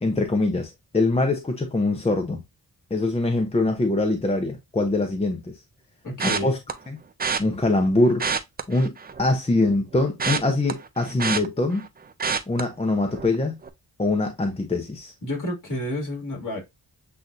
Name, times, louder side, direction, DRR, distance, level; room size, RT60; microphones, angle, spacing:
voice 1, 0.0-2.4 2.9-5.6 6.2-6.6 6.9-7.0 7.4-8.3 8.7-8.9 9.2-11.8 12.5-13.6 14.0-15.1, left 2 dB, 15° left, 0.7 m, -23 dB
voice 2, 6.0-6.5 15.2-16.6, left 1 dB, 50° left, 2.6 m, -30 dB
sound 1, 6.2-6.7 7.2-7.4 8.1-9.3 9.7-11.9 12.2-12.6 13.1-13.3 13.6-13.7, right 5 dB, 25° right, 0.5 m, -27 dB
7.7 x 2.6 x 2.6 m
wide cardioid pair, 100°, 39 cm